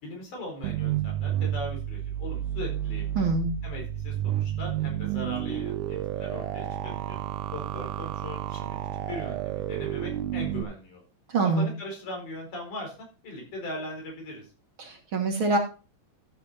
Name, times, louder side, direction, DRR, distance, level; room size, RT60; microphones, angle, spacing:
voice 1, 0.0-3.2 3.6-7.2 7.5-8.8 9.1-11.0 11.4-14.5, left 1 dB, 90° left, 0 dB, 5.9 m, -39 dB
sound 1, 0.6-10.6, right 12 dB, 80° right, 2.2 m, -31 dB
voice 2, 3.2-3.5 11.3-11.7 14.8-15.6, right 3 dB, 50° right, 3 dB, 2.2 m, -25 dB
13.5 x 6.4 x 4.2 m, 0.33 s
omnidirectional pair, 3.4 m